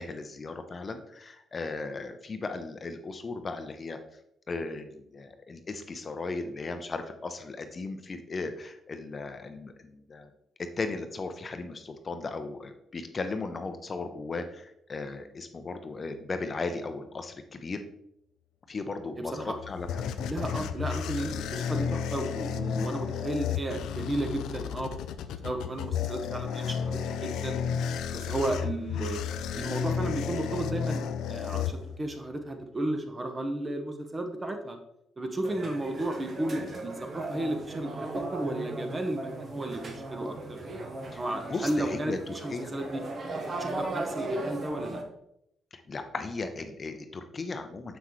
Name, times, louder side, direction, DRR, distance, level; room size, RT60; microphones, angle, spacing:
voice 1, 0.0-4.0 4.5-10.3 10.6-17.8 18.7-20.1 20.6-20.7 41.1-41.2 41.5-42.7 45.7-48.0, left 3 dB, 35° left, 7 dB, 0.7 m, -36 dB
voice 2, 19.2-19.6 20.2-24.9 25.4-27.6 28.1-29.2 29.5-34.8 35.2-40.6 41.0-43.0 43.5-45.0, right 1 dB, 25° right, 5 dB, 1.0 m, -33 dB
sound 1, 19.3-32.3, left 7 dB, 85° left, 0.4 m, -33 dB
sound 2, 35.4-45.0, right 2 dB, 45° right, 1.3 m, -37 dB
6.9 x 5.9 x 3.1 m, 0.77 s
cardioid pair, 90°, 0 cm